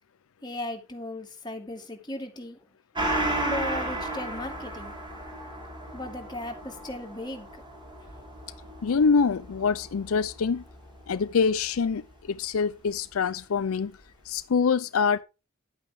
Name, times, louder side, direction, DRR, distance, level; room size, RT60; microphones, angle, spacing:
voice 1, 0.4-2.6 3.1-4.9 5.9-7.5, left 1 dB, 20° left, 2.5 m, -36 dB
Gong, 2.9-11.9 12.3-12.4, right 1 dB, 20° right, 5.0 m, -35 dB
voice 2, 8.8-10.6 11.1-12.0 12.3-13.9 14.3-15.2, left 5 dB, 80° left, 0.5 m, -25 dB
10.5 x 8.8 x 3.5 m
head